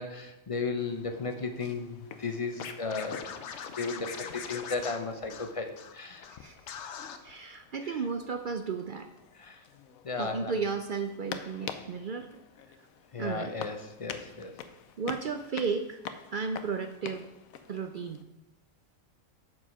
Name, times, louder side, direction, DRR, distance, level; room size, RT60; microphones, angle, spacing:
voice 1, 0.0-3.3 3.8-6.3 9.4-9.6 10.0-10.5 13.1-14.5, left 4 dB, 35° left, 6 dB, 0.5 m, -35 dB
sound 1, 0.8-18.2, left 8 dB, 85° left, 1.1 m, -47 dB
Scratching (performance technique), 2.6-5.9 6.2-6.4 6.7-7.2, left 7 dB, 60° left, 1.0 m, -41 dB
voice 2, 6.3-6.7 7.2-9.1 10.2-12.3 13.2-13.5 15.0-16.0 16.3-17.3 17.7-18.3, right 5 dB, 65° right, 7 dB, 0.5 m, -34 dB
7.5 x 6.3 x 5.6 m, 0.89 s
omnidirectional pair, 1.4 m